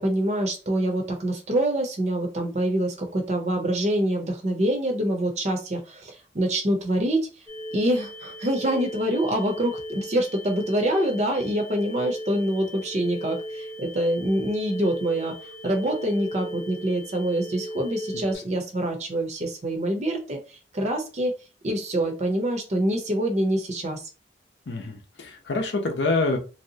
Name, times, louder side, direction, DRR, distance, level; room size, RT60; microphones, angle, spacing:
voice 1, 0.0-7.3 7.7-21.3 21.6-24.1, right 1 dB, 40° right, 3 dB, 0.6 m, -25 dB
sound 1, 7.5-18.4, equal, 15° left, 0.8 m, -37 dB
voice 2, 24.7-26.4, left 3 dB, 70° left, 2 dB, 0.7 m, -26 dB
3.2 x 2.7 x 2.7 m, 0.33 s
head